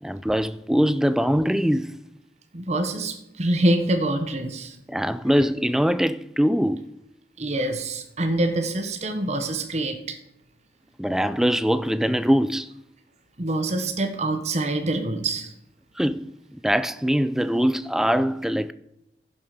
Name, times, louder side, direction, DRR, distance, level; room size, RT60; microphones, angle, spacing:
voice 1, 0.0-2.0 4.9-6.9 11.0-12.7 16.0-16.3 16.6-18.7, equal, 5° right, 0.3 m, -22 dB
voice 2, 2.5-4.8 7.4-10.2 13.4-15.5, right 1 dB, 40° right, 1.1 m, -25 dB
11.5 x 7.4 x 5.1 m
head